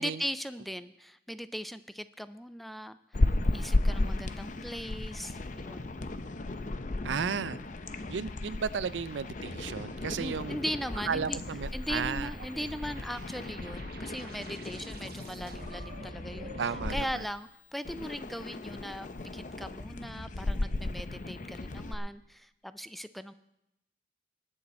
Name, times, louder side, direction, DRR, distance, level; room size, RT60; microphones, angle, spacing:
voice 1, 0.0-3.0 3.5-6.0 10.2-11.4 11.7-19.1 19.3-23.3, equal, ahead, 13 dB, 0.3 m, -39 dB
sound 1, 3.1-17.0 17.8-21.9, left 2 dB, 45° left, 0.7 m, -35 dB
voice 2, 7.0-7.6 8.1-10.6 11.1-12.3 16.6-17.2, right 6 dB, 80° right, 17 dB, 0.5 m, -34 dB
sound 2, 9.5-17.3, right 2 dB, 55° right, 1.0 m, -48 dB
19.5 x 8.6 x 4.2 m, 0.83 s
head